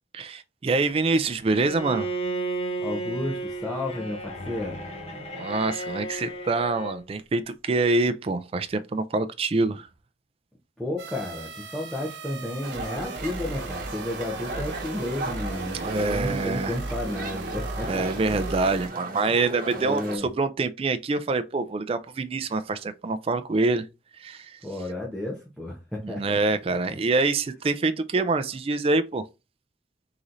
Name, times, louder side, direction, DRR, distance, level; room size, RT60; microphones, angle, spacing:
voice 1, 0.1-2.1 5.3-9.9 15.7-16.7 17.9-23.9 24.2-24.6 26.0-29.2, right 3 dB, 35° right, 0.4 m, -25 dB
Bowed string instrument, 1.5-7.0, right 2 dB, 35° left, 1.1 m, -33 dB
voice 2, 2.8-4.8 10.8-18.1 19.7-20.3 24.6-26.4 26.7-26.9, left 1 dB, ahead, 0.8 m, -32 dB
sound 1, 11.0-18.9, right 2 dB, 80° right, 0.9 m, -36 dB
sound 2, 12.6-20.2, right 2 dB, 50° right, 0.9 m, -37 dB
3.8 x 3.1 x 3.9 m
head